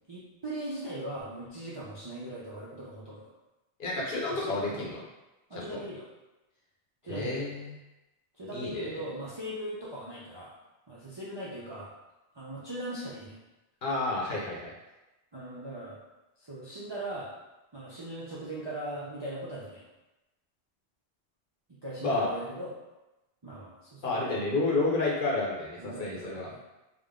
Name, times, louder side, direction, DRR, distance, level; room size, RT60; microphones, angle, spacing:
voice 1, 0.1-3.3 4.3-4.8 5.5-6.1 7.0-7.4 8.4-10.5 10.9-11.9 12.3-13.4 15.3-16.0 16.4-17.3 17.7-19.8 21.7-22.7 23.4-24.4 25.8-26.6, right 1 dB, 35° right, -7 dB, 0.4 m, -39 dB
voice 2, 3.8-5.0 5.6-5.8 7.0-7.7 8.5-8.8 13.8-14.7 22.0-22.3 24.0-26.5, left 2 dB, 55° left, -4 dB, 0.9 m, -30 dB
3.6 x 2.1 x 3.5 m, 1.0 s
omnidirectional pair, 1.2 m